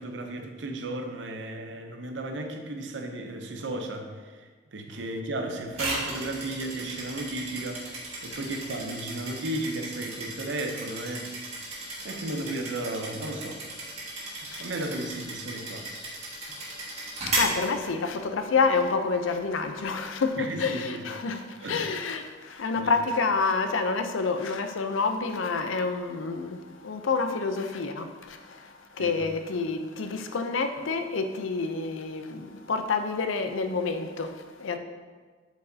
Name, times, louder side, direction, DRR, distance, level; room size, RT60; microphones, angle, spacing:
voice 1, 0.0-11.3 12.0-13.6 14.6-15.9 16.2-16.4 20.4-21.0 21.6-21.9 22.7-22.9 29.0-29.2, right 2 dB, 70° right, 0.6 m, -34 dB
sound 1, 5.7-18.4, right 2 dB, 35° right, 1.5 m, -35 dB
voice 2, 14.3-14.6 17.2-34.8, left 4 dB, 90° left, 0.5 m, -28 dB
8.0 x 4.6 x 2.7 m
head